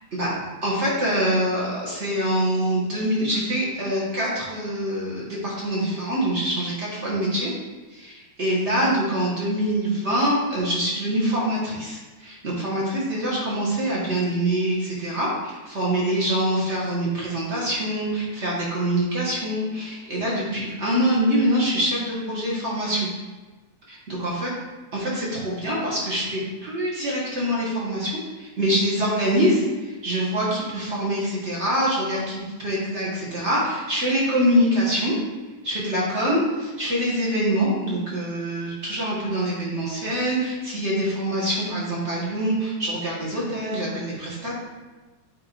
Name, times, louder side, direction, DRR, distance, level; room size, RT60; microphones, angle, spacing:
voice 1, 0.6-7.5 7.9-23.1 23.9-24.5 24.9-35.1 35.6-44.6, equal, 35° right, -5 dB, 1.1 m, -25 dB
8.9 x 3.7 x 4.6 m, 1.3 s
omnidirectional pair, 3.4 m